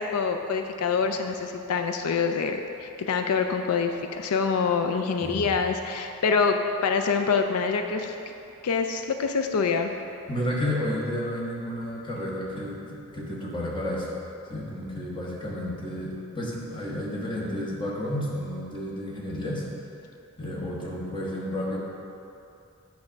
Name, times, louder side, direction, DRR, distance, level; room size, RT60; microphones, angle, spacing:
voice 1, 0.0-8.1 8.6-9.9, left 5 dB, 90° left, 6 dB, 0.4 m, -26 dB
voice 2, 10.3-14.1 14.5-19.6 20.4-21.8, left 1 dB, 20° left, -4 dB, 1.2 m, -31 dB
8.7 x 3.6 x 6.2 m, 2.7 s
head